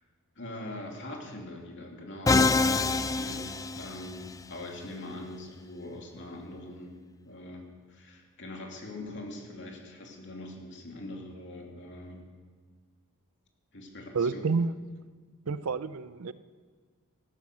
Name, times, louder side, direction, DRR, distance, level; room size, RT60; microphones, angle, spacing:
voice 1, 0.3-12.3 13.7-14.4 15.4-15.6, left 1 dB, 55° left, 1 dB, 2.9 m, -43 dB
Musical instrument, 2.3-4.3, left 3 dB, 15° left, 0.4 m, -25 dB
voice 2, 14.1-14.7 15.5-16.3, right 4 dB, 70° right, 15 dB, 0.6 m, -29 dB
16.0 x 13.0 x 6.3 m, 1.5 s
head